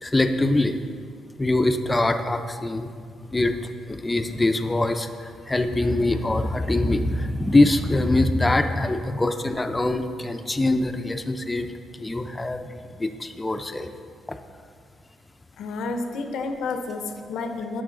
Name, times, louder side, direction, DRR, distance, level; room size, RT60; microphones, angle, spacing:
voice 1, 0.0-1.0 1.4-2.9 3.3-3.5 3.9-11.7 12.0-13.9, left 2 dB, 15° left, 7 dB, 0.6 m, -23 dB
voice 2, 15.6-17.8, left 3 dB, 75° left, 6 dB, 0.7 m, -30 dB
10.0 x 6.3 x 3.8 m, 2.1 s
cardioid pair, 90°, 0 cm